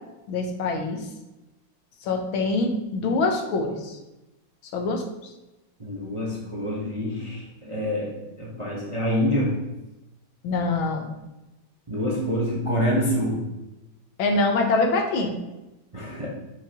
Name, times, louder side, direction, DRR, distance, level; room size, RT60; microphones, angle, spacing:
voice 1, 0.3-1.1 2.0-4.0 4.7-5.0 10.4-11.1 14.2-15.3, left 3 dB, 85° left, 3 dB, 1.7 m, -24 dB
voice 2, 5.8-9.6 11.9-13.5 15.9-16.3, equal, 25° right, -4 dB, 0.6 m, -26 dB
6.0 x 5.7 x 2.9 m, 0.98 s
omnidirectional pair, 2.2 m